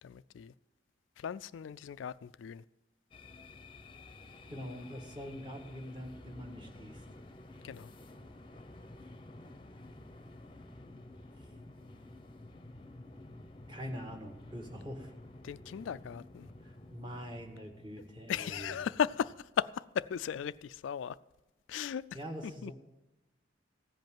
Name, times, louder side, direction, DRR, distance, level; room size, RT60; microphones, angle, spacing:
voice 1, 0.0-0.5 1.2-2.6 7.6-7.9 15.4-16.5 18.3-21.2 21.7-22.0 22.6-22.7, left 8 dB, 80° left, 0.3 m, -36 dB
sound 1, 3.1-19.4, left 2 dB, 25° left, 0.7 m, -52 dB
voice 2, 4.5-7.0 11.4-11.5 13.7-15.1 16.6-18.7 22.1-22.7, equal, 25° right, 1.5 m, -44 dB
15.5 x 5.3 x 9.0 m
head